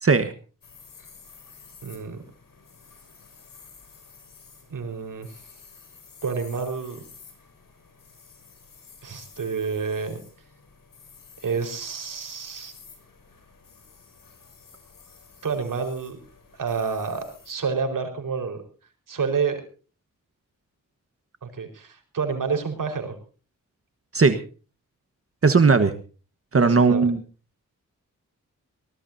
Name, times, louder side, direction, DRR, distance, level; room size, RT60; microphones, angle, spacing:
voice 1, 0.0-0.3 24.1-24.4 25.4-25.9 26.5-27.2, right 4 dB, 45° right, 9 dB, 1.4 m, -18 dB
sound 1, 0.6-17.5, left 5 dB, 85° left, 6.1 m, -51 dB
voice 2, 1.8-2.2 4.7-5.4 6.2-7.0 9.0-10.2 11.4-12.7 15.4-16.2 16.6-18.6 19.1-19.6 21.4-23.2 26.6-27.0, right 5 dB, 75° right, 6 dB, 4.8 m, -29 dB
22.5 x 19.0 x 2.8 m, 0.37 s
wide cardioid pair, 90°, 32 cm